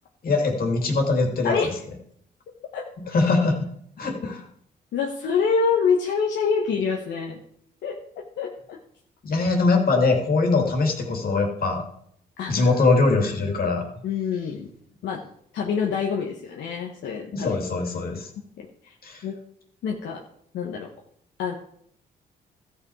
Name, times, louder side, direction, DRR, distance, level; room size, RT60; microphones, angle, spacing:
voice 1, 0.2-1.6 3.1-3.7 4.0-4.4 9.2-11.8 12.5-13.9 17.3-18.3 19.0-19.2, left 3 dB, 55° left, 3 dB, 2.7 m, -22 dB
voice 2, 4.9-7.4 7.8-8.0 8.4-8.8 12.4-12.8 14.0-14.7 15.0-15.2 15.5-17.5 18.6-18.9 19.2-19.4 19.8-20.2 20.5-20.9 21.4-21.6, left 5 dB, 80° left, 0 dB, 1.2 m, -26 dB
13.5 x 6.0 x 4.8 m, 0.68 s
supercardioid pair, 70°, 18 cm